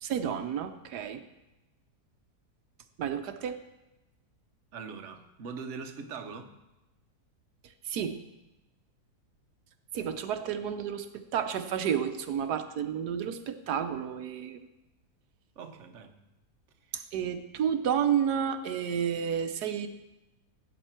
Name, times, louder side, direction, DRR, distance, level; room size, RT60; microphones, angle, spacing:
voice 1, 0.0-1.2 3.0-3.6 7.8-8.2 9.9-14.6 16.9-19.9, right 8 dB, 90° right, 8 dB, 1.4 m, -31 dB
voice 2, 4.7-6.5 15.6-16.2 16.8-17.0, right 5 dB, 55° right, 5 dB, 1.2 m, -42 dB
16.5 x 9.0 x 4.4 m, 0.99 s
omnidirectional pair, 1.7 m